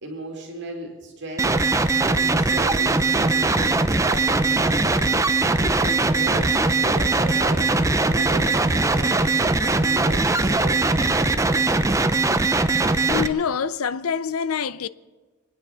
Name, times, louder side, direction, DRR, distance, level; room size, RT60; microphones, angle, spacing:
voice 1, 0.0-1.5 2.0-3.8 4.0-5.3 5.6-7.6 8.1-11.2, right 1 dB, 55° right, 2.5 m, -36 dB
sound 1, 1.4-13.3, right 3 dB, 15° right, 0.5 m, -20 dB
sound 2, 6.3-6.5 6.9-7.0 7.4-7.5 7.9-8.0 8.4-8.6 9.0-9.2 9.5-9.7 10.0-10.2 10.5-10.7 11.1-11.2 11.6-12.0, left 1 dB, 35° left, 2.3 m, -44 dB
voice 2, 13.1-14.9, left 7 dB, 80° left, 0.5 m, -25 dB
25.5 x 9.8 x 5.7 m
head